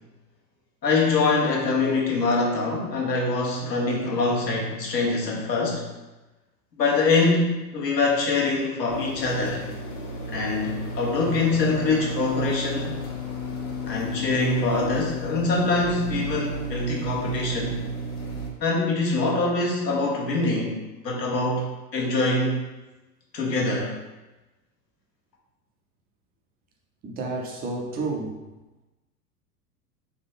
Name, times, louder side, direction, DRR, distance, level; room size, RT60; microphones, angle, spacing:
voice 1, 0.8-5.9 6.8-9.7 10.3-12.9 13.8-17.8 18.6-20.7 21.0-21.6 21.9-22.6 23.3-23.9, left 3 dB, 80° left, -3 dB, 1.2 m, -24 dB
sound 1, 8.9-18.5, right 1 dB, 60° left, 1.1 m, -33 dB
voice 2, 27.0-28.4, right 3 dB, 20° right, 0 dB, 0.6 m, -30 dB
4.2 x 3.0 x 3.5 m, 1.1 s
figure-of-eight pair, 95°, 49 cm